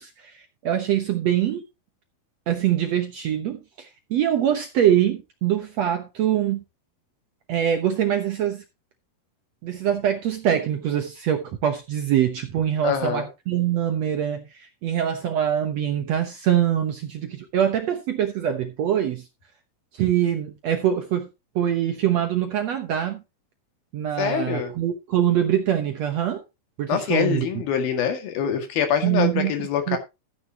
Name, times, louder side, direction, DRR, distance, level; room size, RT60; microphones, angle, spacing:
voice 1, 0.0-1.6 2.5-6.6 7.5-8.6 9.6-19.3 19.9-21.3 21.5-23.2 23.9-26.4 26.8-27.5 29.0-29.5 29.9-30.0, right 10 dB, 70° right, 1.7 m, -24 dB
voice 2, 12.8-13.3 24.2-24.7 26.9-30.0, left 8 dB, 75° left, 3.8 m, -24 dB
13.5 x 9.5 x 2.8 m
omnidirectional pair, 4.3 m